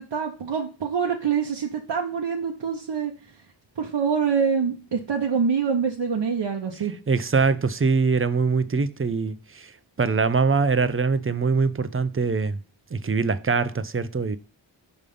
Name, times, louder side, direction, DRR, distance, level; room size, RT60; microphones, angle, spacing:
voice 1, 0.0-3.1 3.8-6.9, right 6 dB, 70° right, 0.9 m, -25 dB
voice 2, 7.1-9.7 10.0-12.6 12.9-14.4, right 4 dB, 30° right, 0.6 m, -23 dB
5.3 x 3.4 x 5.3 m
cardioid pair, 45°, 47 cm